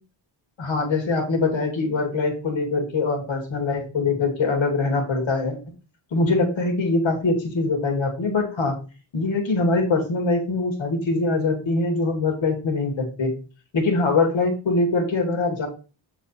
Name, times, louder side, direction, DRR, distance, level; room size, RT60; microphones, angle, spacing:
voice 1, 0.6-5.6 6.1-8.8 9.1-13.3 13.7-15.7, left 3 dB, 85° left, 3 dB, 2.5 m, -23 dB
7.4 x 4.1 x 4.4 m, 0.35 s
cardioid pair, 90°, 45 cm